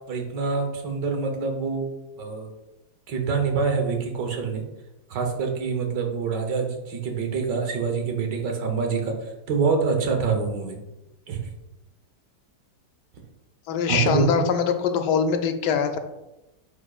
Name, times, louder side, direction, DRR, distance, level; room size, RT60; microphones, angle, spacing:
voice 1, 0.1-1.9 2.2-2.5 3.1-4.6 5.1-9.2 9.5-10.8 11.3-11.5 13.9-14.4, right 5 dB, 85° right, 4 dB, 1.7 m, -25 dB
voice 2, 13.7-16.0, left 7 dB, 85° left, 7 dB, 1.2 m, -23 dB
8.5 x 4.9 x 2.4 m, 0.98 s
omnidirectional pair, 1.8 m